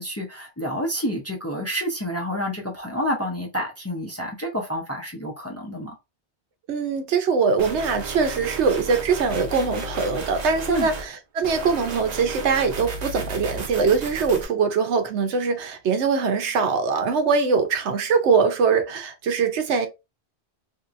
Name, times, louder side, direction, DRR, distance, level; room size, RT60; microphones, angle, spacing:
voice 1, 0.0-6.0 10.7-10.9, equal, 20° left, 0.5 m, -28 dB
voice 2, 6.7-19.9, right 5 dB, 90° right, 1.0 m, -22 dB
sound 1, 7.6-11.1 11.4-14.4, right 3 dB, 45° right, 0.7 m, -33 dB
3.3 x 2.8 x 2.5 m
omnidirectional pair, 1.1 m